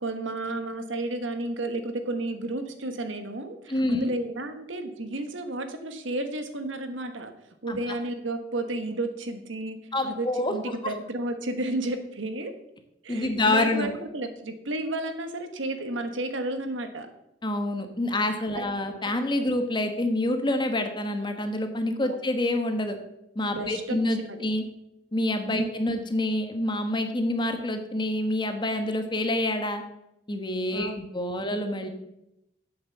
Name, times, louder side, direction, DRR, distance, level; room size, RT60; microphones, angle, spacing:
voice 1, 0.0-7.3 7.6-9.8 10.0-12.5 13.0-17.1 18.5-18.7 22.0-22.2 23.5-24.4 25.5-25.7 30.7-31.0, right 2 dB, 80° right, 7 dB, 1.3 m, -32 dB
voice 2, 3.7-4.1 7.7-7.8 9.9-10.5 10.8-10.9 13.1-13.9 17.4-23.0 23.3-24.6 25.1-29.8 30.3-31.9, left 1 dB, 25° left, 6 dB, 1.1 m, -27 dB
8.0 x 7.5 x 7.1 m, 0.86 s
head